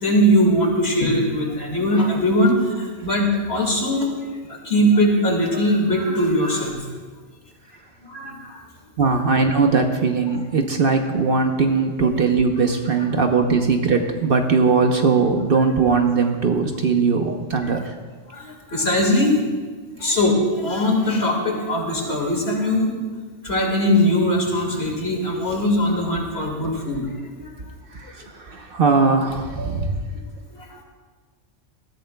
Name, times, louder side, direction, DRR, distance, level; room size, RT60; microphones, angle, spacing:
voice 1, 0.0-4.1 4.5-6.8 8.1-8.6 17.3-17.4 18.3-19.4 20.0-22.9 23.4-27.5 29.6-29.7 30.5-30.8, equal, 55° left, 0 dB, 2.4 m, -21 dB
voice 2, 9.0-17.9 27.9-29.9, right 4 dB, 55° right, 4 dB, 1.0 m, -20 dB
18.5 x 14.0 x 2.3 m, 1.5 s
omnidirectional pair, 1.2 m